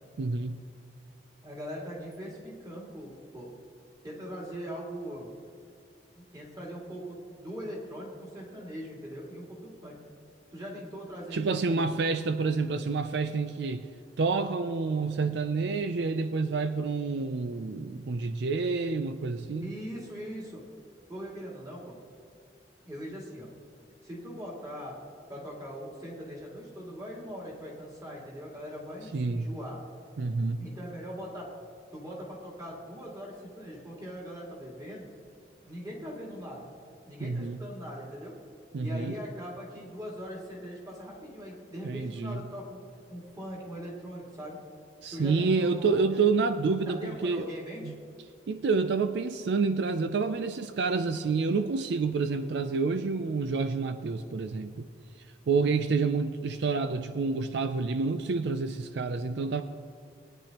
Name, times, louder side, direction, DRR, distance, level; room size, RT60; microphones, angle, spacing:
voice 1, 0.2-0.6 11.3-13.9 14.2-19.7 29.1-29.5 30.2-30.7 37.2-37.6 38.7-39.1 41.8-42.4 45.0-47.5 47.8-48.0 48.5-54.9 55.5-59.6, right 4 dB, 70° right, 9 dB, 0.4 m, -28 dB
voice 2, 1.4-3.5 4.0-5.3 6.1-10.0 10.5-11.9 19.6-20.6 21.1-22.0 22.8-23.5 24.0-25.0 25.3-29.8 30.6-31.5 31.9-35.1 35.6-36.7 37.1-38.3 38.8-42.8 43.1-44.6 45.1-46.1 46.8-47.9 55.6-56.3, equal, 20° right, -3 dB, 2.3 m, -41 dB
20.5 x 9.8 x 2.9 m, 2.4 s
head